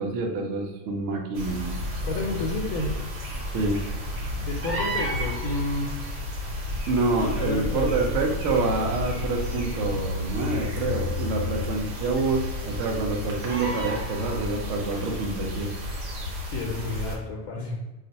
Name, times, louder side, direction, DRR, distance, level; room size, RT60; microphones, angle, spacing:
voice 1, 0.0-1.8 3.5-3.8 6.9-15.7, right 3 dB, 65° right, 2 dB, 0.8 m, -27 dB
sound 1, 1.3-17.2, left 1 dB, 80° right, 1.2 m, -31 dB
voice 2, 2.0-2.9 4.3-6.0 7.1-7.9 16.4-17.8, left 2 dB, 80° left, -1 dB, 1.0 m, -31 dB
2.5 x 2.4 x 3.9 m, 1.1 s
omnidirectional pair, 1.5 m